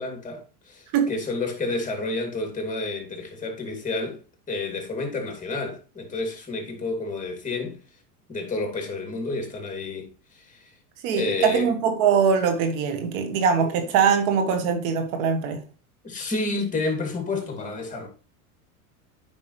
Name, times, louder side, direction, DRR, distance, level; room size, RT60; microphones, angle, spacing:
voice 1, 0.0-4.2 4.5-7.8 8.3-10.7 11.1-11.7 13.6-13.8 16.0-18.1, left 3 dB, 15° left, 2.6 m, -30 dB
voice 2, 11.0-15.6, right 6 dB, 60° right, 1.6 m, -22 dB
9.0 x 5.4 x 3.2 m
hypercardioid pair, 100°, 44 cm